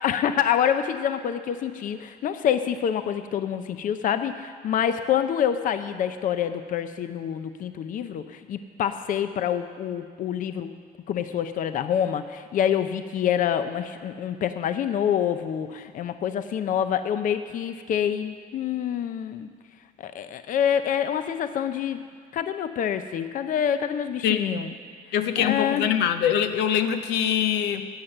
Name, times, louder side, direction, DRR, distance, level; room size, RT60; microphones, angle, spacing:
voice 1, 0.0-10.7 11.1-19.5 20.0-22.1 22.3-24.7 25.4-26.0, left 9 dB, 55° left, 10 dB, 0.6 m, -26 dB
voice 2, 24.2-24.6 25.1-27.9, left 9 dB, 90° left, 8 dB, 0.8 m, -24 dB
14.0 x 9.2 x 6.6 m, 2.1 s
cardioid pair, 110°, 17 cm